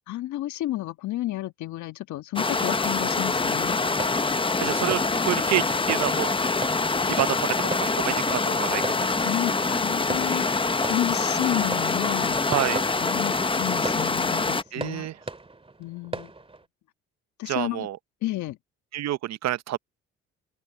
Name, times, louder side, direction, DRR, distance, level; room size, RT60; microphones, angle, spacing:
voice 1, 0.1-3.8 9.2-12.4 13.0-15.1 15.8-16.3 17.4-17.9 18.2-18.6, left 16 dB, 70° left, 1.5 m, -31 dB
sound 1, 2.4-14.6, left 3 dB, 15° left, 0.9 m, -25 dB
voice 2, 4.6-6.3 7.1-9.1 12.5-12.8 14.7-15.2 17.5-18.0 18.9-19.8, right 13 dB, 60° right, 0.8 m, -28 dB
sound 2, 10.1-16.7, right 3 dB, 20° right, 2.5 m, -40 dB
open air
supercardioid pair, 65°, 30 cm